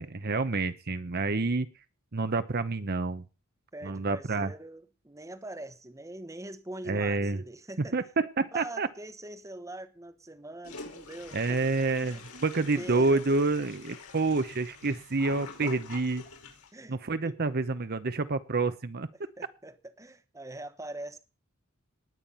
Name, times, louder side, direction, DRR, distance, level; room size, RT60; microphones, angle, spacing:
voice 1, 0.0-1.7 2.1-3.2 3.8-4.5 6.9-7.4 7.8-8.9 11.3-16.2 16.9-19.1, right 3 dB, 45° right, 0.8 m, -28 dB
voice 2, 3.7-8.0 8.5-11.6 12.0-12.2 12.8-13.2 14.3-14.4 15.6-15.7 16.7-17.0 17.2-17.4 19.4-21.2, right 1 dB, 15° right, 1.2 m, -43 dB
Toilet flush, 10.6-16.7, left 4 dB, 85° left, 5.4 m, -46 dB
19.0 x 9.0 x 5.6 m
head